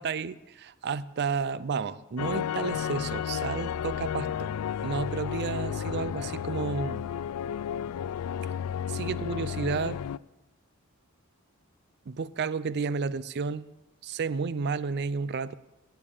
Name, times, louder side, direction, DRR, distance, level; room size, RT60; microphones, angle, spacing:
voice 1, 0.0-4.5 4.8-7.1 8.9-10.0 12.1-13.7 14.0-15.5, right 5 dB, 50° right, 0.4 m, -31 dB
sound 1, 2.2-10.2, left 8 dB, 85° left, 0.3 m, -32 dB
17.0 x 6.8 x 7.1 m
head